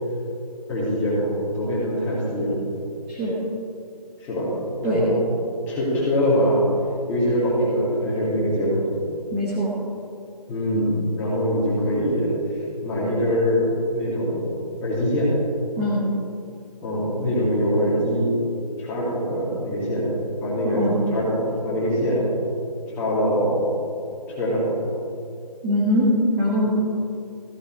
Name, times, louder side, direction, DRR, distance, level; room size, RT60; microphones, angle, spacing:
voice 1, 0.7-2.6 4.2-4.5 4.8-5.2 5.7-6.6 7.1-9.0 10.5-12.3 12.8-13.6 13.9-15.3 16.8-18.3 18.8-20.1 20.4-22.2 23.0-23.7 24.3-24.7, equal, 10° left, -9 dB, 2.6 m, -23 dB
voice 2, 9.3-9.7 15.8-16.1 20.6-21.0 25.6-26.1 26.4-26.7, equal, 10° right, -7 dB, 1.0 m, -22 dB
15.5 x 11.0 x 4.7 m, 2.5 s
figure-of-eight pair, 165°, 21 cm